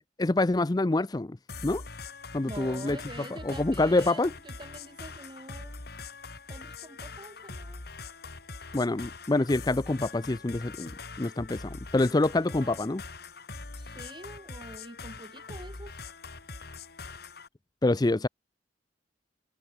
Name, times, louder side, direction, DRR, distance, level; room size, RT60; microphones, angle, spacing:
voice 1, 0.2-1.4 1.6-1.8 2.3-4.3 8.7-10.9 11.2-13.0 17.8-18.3, left 2 dB, 20° left, 0.5 m, -26 dB
sound 1, 1.5-17.5, left 4 dB, 55° left, 2.1 m, -43 dB
voice 2, 2.4-5.8 6.5-7.8 12.4-12.9 13.8-16.0, right 2 dB, 25° right, 1.8 m, -46 dB
head